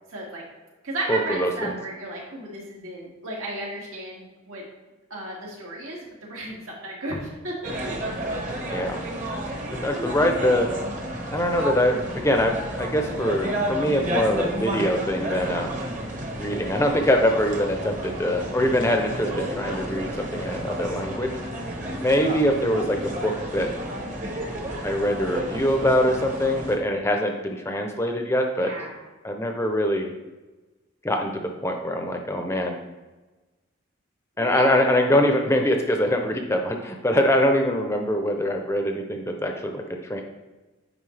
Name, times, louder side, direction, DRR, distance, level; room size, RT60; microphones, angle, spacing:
voice 1, 0.1-0.4 0.8-4.6 5.1-8.3 21.6-22.0 28.6-28.9 34.4-34.7, right 1 dB, 80° right, -4 dB, 2.3 m, -34 dB
voice 2, 1.1-1.8 8.7-9.0 9.8-10.7 11.3-15.7 16.4-21.3 22.0-23.7 24.8-28.7 29.2-30.1 31.0-32.8 34.4-40.2, left 1 dB, 10° left, 3 dB, 0.5 m, -23 dB
sound 1, 7.6-26.8, right 1 dB, 35° right, 1.1 m, -31 dB
9.2 x 5.3 x 3.3 m, 1.2 s
head